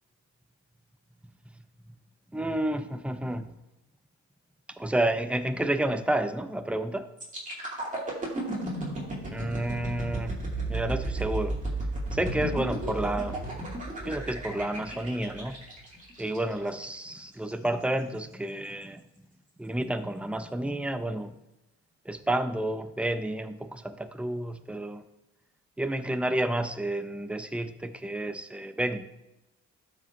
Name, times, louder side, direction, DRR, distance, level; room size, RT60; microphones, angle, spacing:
voice 1, 2.3-3.5 4.8-7.1 9.3-11.5 12.1-13.4 14.0-15.6 16.2-19.0 19.6-21.3 22.1-25.0 25.8-29.1, right 1 dB, 5° right, 9 dB, 0.6 m, -30 dB
sound 1, 7.2-17.0 17.5-17.7, right 2 dB, 25° right, 2.5 m, -34 dB
13.0 x 5.1 x 2.7 m, 0.92 s
cardioid pair, 90°, 30 cm